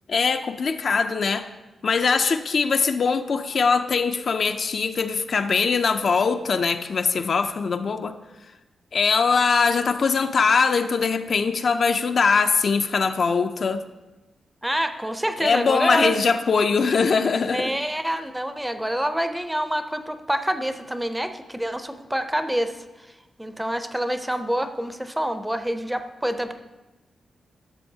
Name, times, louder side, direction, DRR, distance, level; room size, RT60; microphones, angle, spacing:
voice 1, 0.1-1.5 1.8-8.1 8.9-13.8 15.4-17.7, left 5 dB, 55° left, 8 dB, 0.4 m, -22 dB
voice 2, 14.6-16.2 17.5-23.1 23.4-26.6, equal, 5° right, 9 dB, 0.5 m, -27 dB
12.0 x 6.9 x 2.7 m, 1.1 s
wide cardioid pair, 110°, 0 cm